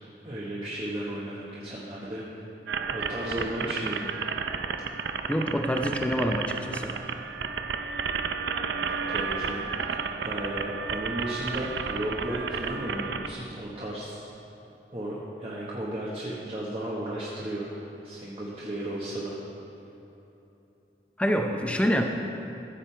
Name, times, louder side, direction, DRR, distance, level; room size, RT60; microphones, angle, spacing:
voice 1, 0.0-2.4 2.8-4.1 9.1-9.6 10.2-14.3 14.9-19.4, right 1 dB, 30° right, -6 dB, 1.1 m, -34 dB
sound 1, 2.7-13.3, right 5 dB, 85° right, 0.5 m, -32 dB
voice 2, 5.3-6.9 21.2-22.0, equal, 5° left, 4 dB, 0.6 m, -26 dB
14.5 x 7.3 x 4.5 m, 3.0 s
head